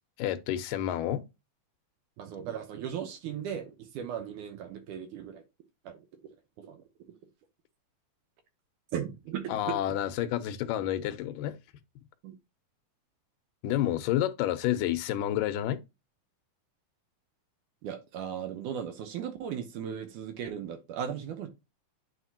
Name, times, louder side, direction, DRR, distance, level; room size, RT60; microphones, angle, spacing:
voice 1, 0.2-1.2 9.5-11.6 13.6-15.8, left 12 dB, 85° left, 2.3 m, -29 dB
voice 2, 2.2-5.4 5.8-6.1 6.6-6.8 8.9-9.8 12.2-12.4 17.8-21.5, right 8 dB, 75° right, 2.2 m, -37 dB
8.9 x 4.2 x 2.8 m
omnidirectional pair, 3.8 m